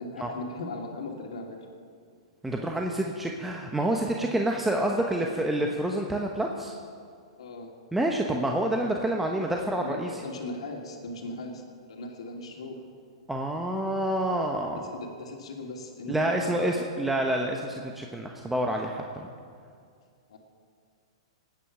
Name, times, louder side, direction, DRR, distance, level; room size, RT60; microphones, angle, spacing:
voice 1, 0.0-1.7 7.4-7.8 9.8-12.9 14.8-17.1 20.3-20.4, left 2 dB, 80° left, 2 dB, 2.6 m, -39 dB
voice 2, 2.4-6.7 7.9-10.1 13.3-14.8 16.1-19.3, right 1 dB, 5° right, 1 dB, 1.0 m, -28 dB
20.0 x 9.5 x 6.1 m, 2.2 s
hypercardioid pair, 130°, 3 cm